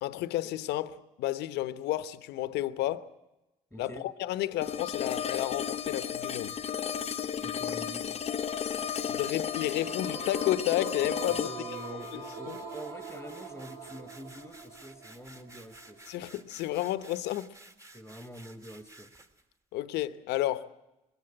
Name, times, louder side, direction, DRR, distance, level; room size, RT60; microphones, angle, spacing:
voice 1, 0.0-3.1 3.8-6.6 9.1-11.5 12.1-12.2 12.5-12.6 16.1-17.5 19.7-20.7, left 14 dB, 85° left, 1.0 m, -31 dB
voice 2, 3.7-4.0 7.4-8.2 11.3-16.3 17.9-19.1, equal, ahead, 1.5 m, -46 dB
sound 1, 4.6-13.6, left 8 dB, 40° left, 0.9 m, -34 dB
sound 2, 8.8-19.4, right 2 dB, 20° right, 1.8 m, -55 dB
sound 3, 9.5-16.5, right 7 dB, 75° right, 3.4 m, -44 dB
21.0 x 17.0 x 9.9 m
cardioid pair, 110°, 17 cm